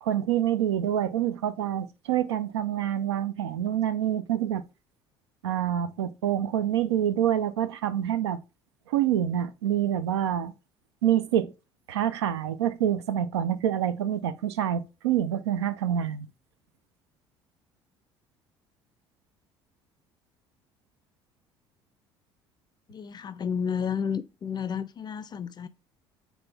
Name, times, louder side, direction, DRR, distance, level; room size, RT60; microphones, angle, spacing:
voice 1, 0.0-4.6 5.4-8.4 8.9-10.5 11.0-11.5 11.9-16.3, right 10 dB, 85° right, 0.4 m, -26 dB
voice 2, 22.9-25.7, left 7 dB, 30° left, 0.4 m, -31 dB
4.2 x 3.4 x 3.3 m
hypercardioid pair, 60°, 14 cm